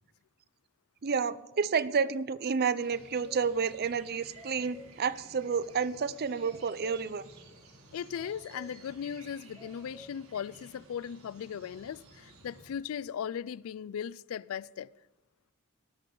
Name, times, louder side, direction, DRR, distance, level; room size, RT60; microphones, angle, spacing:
voice 1, 1.0-7.2, right 5 dB, 45° right, 0.5 m, -30 dB
sound 1, 2.8-12.7, right 2 dB, 85° right, 3.3 m, -55 dB
sound 2, 3.0-3.6 4.0-4.1 4.3-5.1 6.4-7.2 8.1-8.9 9.5-10.2, equal, 5° right, 1.5 m, -53 dB
voice 2, 7.9-14.9, left 8 dB, 70° left, 0.3 m, -38 dB
18.5 x 11.5 x 3.9 m
head